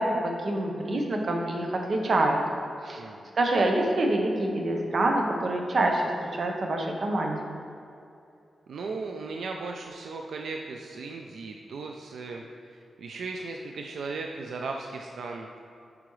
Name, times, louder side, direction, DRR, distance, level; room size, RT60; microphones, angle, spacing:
voice 1, 0.0-2.4 2.8-3.0 3.4-7.6, right 1 dB, 50° right, 2 dB, 0.9 m, -26 dB
voice 2, 3.0-3.3 8.7-15.5, right 3 dB, 80° right, 2 dB, 0.4 m, -37 dB
8.4 x 4.9 x 3.2 m, 2.6 s
wide cardioid pair, 115°, 0 cm